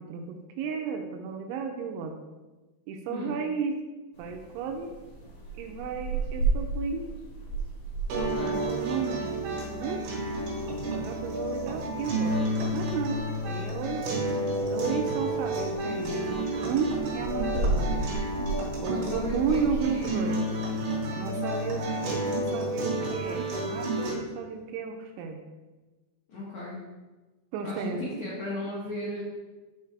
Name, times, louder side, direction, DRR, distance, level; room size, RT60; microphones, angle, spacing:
voice 1, 0.0-2.1 2.9-3.8 4.2-4.9 5.6-7.1 8.1-8.4 8.7-10.0 10.9-12.4 12.7-14.0 14.7-18.0 18.8-20.4 21.1-21.9 22.2-25.4 27.5-28.4, right 5 dB, 85° right, 4 dB, 3.0 m, -33 dB
sound 1, 4.1-20.1, right 3 dB, 55° left, 2.7 m, -35 dB
sound 2, 8.1-24.1, right 1 dB, 65° right, 3.3 m, -31 dB
voice 2, 8.2-8.7 18.9-20.1 26.3-26.8 27.6-29.2, left 2 dB, 85° left, -7 dB, 1.6 m, -35 dB
6.8 x 4.6 x 4.7 m, 1.2 s
omnidirectional pair, 5.4 m